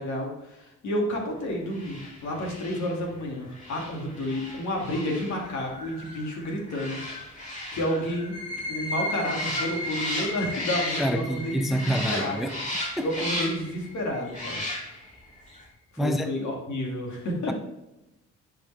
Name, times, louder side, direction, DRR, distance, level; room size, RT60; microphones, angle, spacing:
voice 1, 0.0-7.0 7.3-8.3 8.7-12.5 13.0-14.6 15.9-17.5, left 1 dB, 70° left, 2.6 m, -30 dB
sound 1, 1.7-11.4 11.7-13.8 14.3-15.1 15.5-15.6, left 1 dB, 25° left, 3.0 m, -36 dB
sound 2, 8.2-15.6, left 1 dB, 50° left, 1.8 m, -37 dB
voice 2, 11.0-12.6 13.0-13.3 16.0-16.3 17.5-17.6, equal, ahead, 0.5 m, -27 dB
10.5 x 5.2 x 3.5 m
cardioid pair, 90°, 30 cm